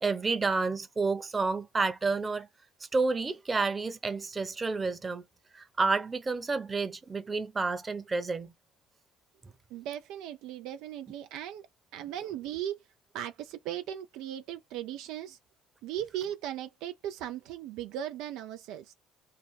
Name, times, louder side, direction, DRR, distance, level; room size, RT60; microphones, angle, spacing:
voice 1, 0.0-2.5 2.8-5.2 5.5-8.5, right 4 dB, 25° right, 0.8 m, -30 dB
voice 2, 9.7-11.7 11.9-12.8 13.1-15.4 15.8-18.9, right 11 dB, 70° right, 0.4 m, -37 dB
3.3 x 2.2 x 3.3 m
hypercardioid pair, 60°, 0 cm